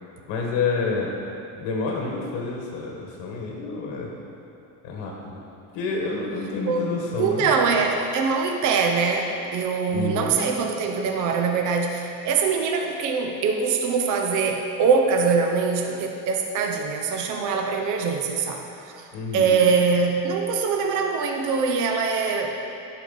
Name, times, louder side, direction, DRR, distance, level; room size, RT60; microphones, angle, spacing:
voice 1, 0.3-1.1 1.6-4.1 4.8-5.4 5.7-7.6 9.9-10.4 19.1-19.5, left 4 dB, 75° left, -1 dB, 1.3 m, -28 dB
voice 2, 7.2-19.0 19.3-22.5, right 5 dB, 45° right, 3 dB, 0.7 m, -23 dB
10.5 x 4.7 x 3.9 m, 2.8 s
cardioid pair, 145°, 44 cm